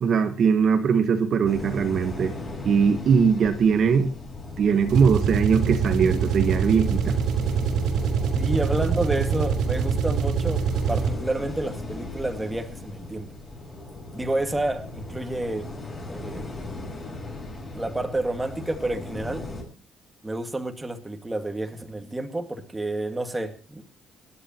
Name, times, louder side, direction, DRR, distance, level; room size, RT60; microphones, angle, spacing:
voice 1, 0.0-2.3 2.6-4.1 4.6-7.1, right 6 dB, 50° right, 8 dB, 1.3 m, -21 dB
sound 1, 1.5-19.6, left 2 dB, 20° left, 6.6 m, -37 dB
sound 2, 4.8-11.4, right 6 dB, 80° right, 3.0 m, -25 dB
voice 2, 8.3-13.3 14.1-15.7 16.1-16.5 17.7-19.4 20.2-23.8, right 2 dB, 10° right, 5 dB, 1.9 m, -29 dB
25.0 x 11.5 x 3.0 m, 0.34 s
cardioid pair, 150°, 0 cm